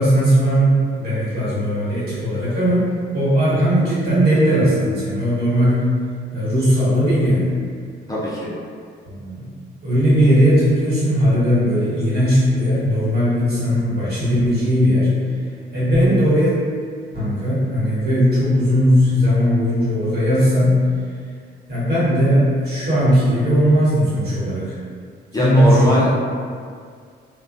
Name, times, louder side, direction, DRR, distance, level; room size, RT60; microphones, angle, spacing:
voice 1, 0.0-5.8 6.3-7.5 9.0-9.4 9.8-15.1 15.7-16.6 17.1-20.8 21.7-24.8 25.4-26.0, equal, 50° right, -11 dB, 1.3 m, -18 dB
voice 2, 8.1-8.5 25.3-26.2, left 1 dB, 20° left, -8 dB, 0.5 m, -20 dB
2.3 x 2.1 x 2.5 m, 2.1 s
cardioid pair, 90°, 20 cm